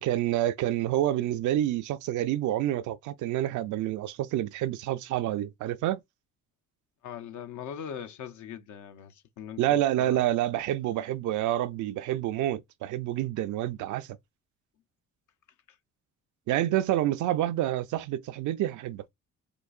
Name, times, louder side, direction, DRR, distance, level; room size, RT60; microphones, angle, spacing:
voice 1, 0.0-6.0 9.6-14.2 16.5-19.0, right 13 dB, 80° right, 0.5 m, -28 dB
voice 2, 7.0-10.3 15.7-15.8, left 8 dB, 75° left, 0.7 m, -41 dB
4.6 x 2.6 x 2.4 m
cardioid pair, 90°, 30 cm